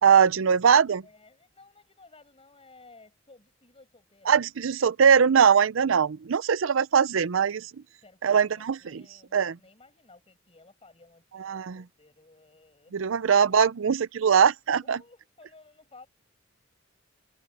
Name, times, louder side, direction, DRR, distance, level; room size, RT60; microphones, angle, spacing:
voice 1, 0.0-1.0 4.3-7.7 8.2-9.0 9.3-9.5 11.4-11.8 12.9-15.0, right 7 dB, 85° right, 0.5 m, -21 dB
voice 2, 1.0-4.3 5.6-5.8 7.7-13.1 13.4-13.7 14.8-16.1, left 3 dB, 30° left, 6.3 m, -56 dB
head